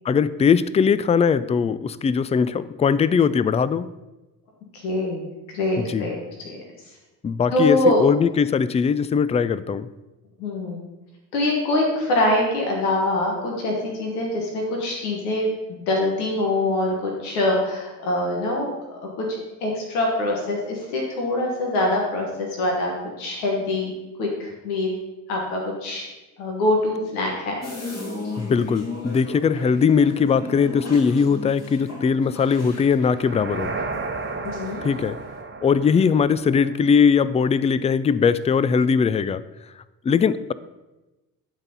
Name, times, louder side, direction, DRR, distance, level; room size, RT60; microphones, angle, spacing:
voice 1, 0.1-3.9 5.8-6.1 7.2-9.9 28.4-33.7 34.8-35.2 35.6-39.4 40.0-40.5, left 6 dB, 15° left, 16 dB, 0.3 m, -20 dB
voice 2, 4.7-5.2 5.5-7.0 7.5-8.0 10.4-10.8 11.3-19.3 19.6-24.9 25.3-26.1 26.4-27.6 34.3-34.8, left 1 dB, 90° left, -1 dB, 1.4 m, -24 dB
sound 1, 27.6-34.2 34.5-35.0, left 2 dB, 35° left, 2.2 m, -35 dB
sound 2, 33.0-37.1, right 3 dB, 25° right, 1.0 m, -33 dB
10.5 x 4.1 x 5.4 m, 1.1 s
hypercardioid pair, 50°, 44 cm